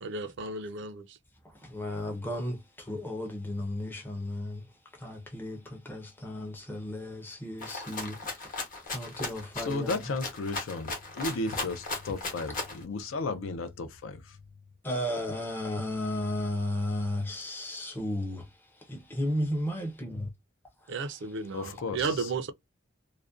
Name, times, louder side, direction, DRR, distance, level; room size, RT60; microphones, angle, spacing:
voice 1, 0.0-1.0 20.9-22.5, right 4 dB, 60° right, 0.4 m, -33 dB
voice 2, 1.6-4.6 4.9-8.6 8.9-10.0 14.8-18.5 18.9-20.3 20.9-21.1, left 1 dB, 10° left, 0.5 m, -34 dB
Rattle (instrument), 7.6-12.8, left 3 dB, 40° left, 0.9 m, -37 dB
voice 3, 9.6-14.4 21.5-22.3, left 3 dB, 65° left, 0.4 m, -34 dB
2.5 x 2.1 x 2.3 m
head